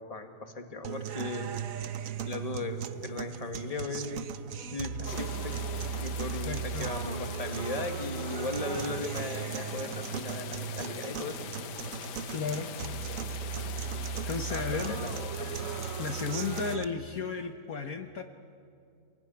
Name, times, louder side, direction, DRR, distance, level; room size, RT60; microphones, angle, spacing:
voice 1, 0.0-1.5 2.2-4.3 4.6-5.6 6.0-11.5 14.5-15.5, left 3 dB, 20° left, 5 dB, 1.8 m, -37 dB
sound 1, 0.8-16.8, right 7 dB, 55° right, 1.1 m, -37 dB
sound 2, 5.1-16.8, left 9 dB, 75° left, 1.5 m, -42 dB
voice 2, 6.4-6.9 12.3-12.7 14.3-15.0 16.0-18.2, left 5 dB, 60° left, 5 dB, 1.4 m, -34 dB
28.0 x 20.5 x 9.9 m, 2.4 s
omnidirectional pair, 1.9 m